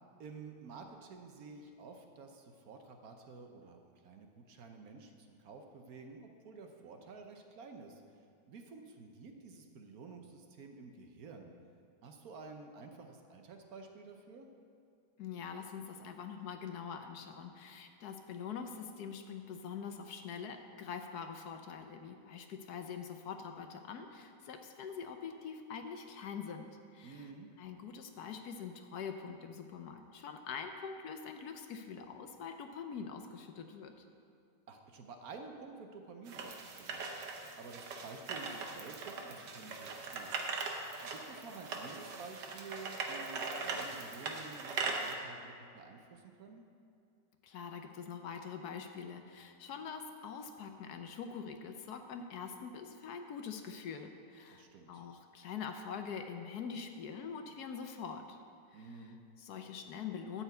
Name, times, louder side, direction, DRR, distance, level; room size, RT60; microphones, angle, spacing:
voice 1, 0.2-8.0 8.5-11.5 12.0-14.5 27.0-27.5 34.7-37.0 37.6-40.6 41.0-46.6 54.5-55.0 58.7-59.2, right 4 dB, 65° right, 4 dB, 1.2 m, -51 dB
voice 2, 15.2-26.6 26.9-27.3 27.6-33.9 47.4-58.4 58.7-58.9 59.4-60.4, left 6 dB, 70° left, 6 dB, 1.2 m, -44 dB
sound 1, 36.3-45.1, right 4 dB, 80° right, 1.6 m, -40 dB
13.0 x 4.4 x 8.2 m, 2.4 s
omnidirectional pair, 1.8 m